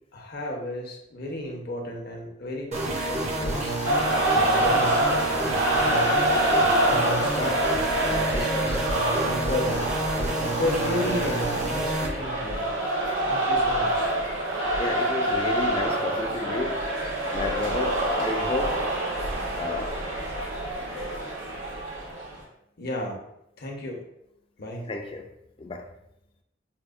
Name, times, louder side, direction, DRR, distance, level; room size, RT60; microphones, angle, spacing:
voice 1, 0.1-3.7 4.3-5.9 6.9-7.6 8.0-9.9 10.2-12.7 13.2-14.1 22.8-23.2 23.6-24.0 24.6-24.9, left 1 dB, 55° left, 0.7 m, -33 dB
sound 1, 2.7-12.1, right 1 dB, 35° right, 0.6 m, -29 dB
sound 2, 3.8-22.4, right 1 dB, 85° right, 1.0 m, -26 dB
voice 2, 14.8-16.9 17.3-18.9 19.5-20.0 24.7-25.3 25.6-25.9, left 3 dB, 30° left, 0.4 m, -31 dB
5.8 x 2.0 x 2.5 m
head